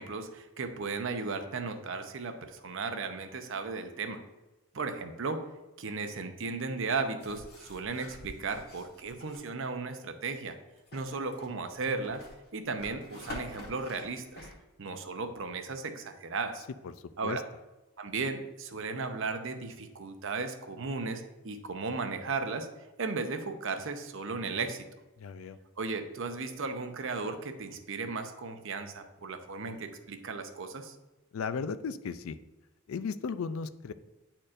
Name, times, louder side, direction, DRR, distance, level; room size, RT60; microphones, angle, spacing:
voice 1, 0.0-4.2 4.7-5.4 5.8-10.6 10.9-12.2 12.5-14.5 14.8-16.6 17.2-17.4 18.0-22.7 23.0-24.8 25.8-31.0, right 4 dB, 65° right, 7 dB, 0.7 m, -35 dB
sound 1, 7.2-9.4 10.8-14.5, left 1 dB, 50° left, 1.4 m, -47 dB
voice 2, 25.2-25.6 31.3-32.4 32.9-33.9, left 5 dB, 70° left, 13 dB, 0.4 m, -36 dB
9.9 x 4.4 x 2.5 m, 1.1 s
head